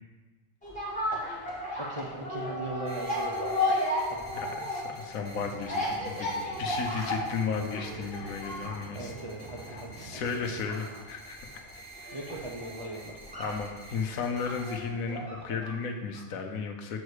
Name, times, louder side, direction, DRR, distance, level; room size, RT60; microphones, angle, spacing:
sound 1, 0.6-15.8 16.1-16.2, left 1 dB, 5° left, 2.1 m, -34 dB
voice 1, 1.7-4.5 8.9-10.2 12.1-13.3, right 2 dB, 35° right, -1 dB, 0.5 m, -40 dB
sound 2, 2.9-14.8, right 1 dB, 25° left, 1.9 m, -49 dB
voice 2, 4.3-6.3 6.6-9.1 10.0-11.4 12.0-12.2 13.4-17.0, left 5 dB, 80° left, 4 dB, 1.3 m, -34 dB
sound 3, 5.2-10.6, right 3 dB, 60° right, 1.3 m, -47 dB
7.0 x 4.7 x 6.4 m, 1.3 s
omnidirectional pair, 1.4 m